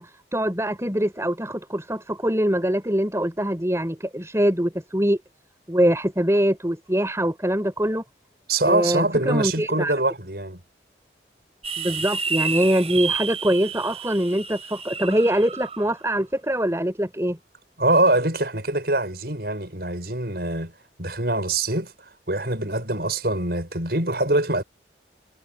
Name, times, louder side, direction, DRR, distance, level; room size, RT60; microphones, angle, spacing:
voice 1, 0.0-5.2 5.7-8.0 8.6-9.9 11.8-17.4, equal, 15° right, 5.2 m, -23 dB
voice 2, 8.5-10.6 17.8-20.7 21.0-21.9 22.3-24.6, right 2 dB, 60° right, 7.4 m, -23 dB
sound 1, 11.6-15.8, right 5 dB, 35° right, 4.9 m, -30 dB
head